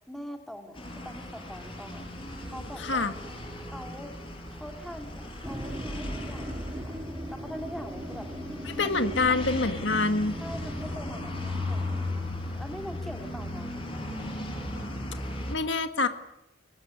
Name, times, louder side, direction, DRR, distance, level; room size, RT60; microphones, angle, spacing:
voice 1, 0.1-2.1 2.5-3.2 3.7-4.1 4.5-7.0 7.3-8.3 8.8-9.1 10.4-13.7, equal, ahead, 4 dB, 2.8 m, -43 dB
sound 1, 0.7-15.6, left 1 dB, 25° left, 7.6 m, -36 dB
voice 2, 2.8-3.1 8.7-10.4 15.5-16.1, left 3 dB, 60° left, 8 dB, 1.8 m, -26 dB
sound 2, 5.4-12.4, right 1 dB, 20° right, 3.3 m, -41 dB
23.5 x 20.5 x 9.7 m, 0.87 s
head